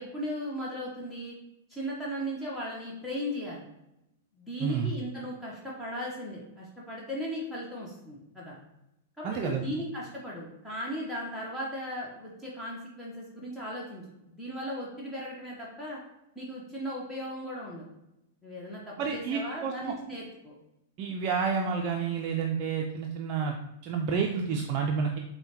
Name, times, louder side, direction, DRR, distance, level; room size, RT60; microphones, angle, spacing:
voice 1, 0.0-1.3 1.7-3.7 4.4-8.6 9.2-14.0 14.3-16.0 16.4-17.9 18.4-20.5, equal, 10° left, -5 dB, 0.8 m, -37 dB
voice 2, 4.6-4.9 9.2-9.6 19.0-19.9 21.0-23.6 23.8-25.2, right 6 dB, 40° right, 1 dB, 0.4 m, -30 dB
5.4 x 2.2 x 2.9 m, 0.88 s
figure-of-eight pair, 100°, 0 cm